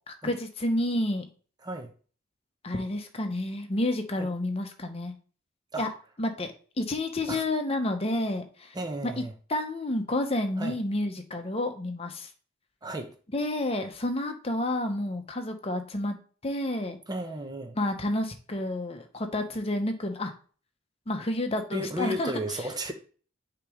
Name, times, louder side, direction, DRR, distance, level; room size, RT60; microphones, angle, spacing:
voice 1, 0.1-1.3 2.6-5.1 5.8-5.9 6.2-8.7 9.0-9.2 9.5-12.3 13.3-16.2 16.4-17.0 17.8-20.3 21.1-22.3, left 1 dB, 30° left, 0.8 m, -30 dB
voice 2, 8.7-9.3 10.6-10.8 12.8-13.1 17.1-17.8 21.7-22.9, right 1 dB, 20° right, 0.8 m, -33 dB
6.7 x 3.0 x 4.9 m
head